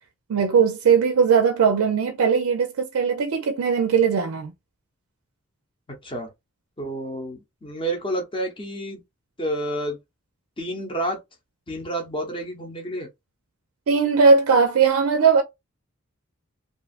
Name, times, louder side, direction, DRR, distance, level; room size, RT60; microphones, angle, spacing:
voice 1, 0.3-4.5 13.9-15.4, right 5 dB, 80° right, 0.4 m, -19 dB
voice 2, 6.8-9.0 9.4-10.0 10.6-11.2 11.7-13.1, right 1 dB, 25° left, 0.7 m, -29 dB
2.5 x 2.3 x 2.4 m
head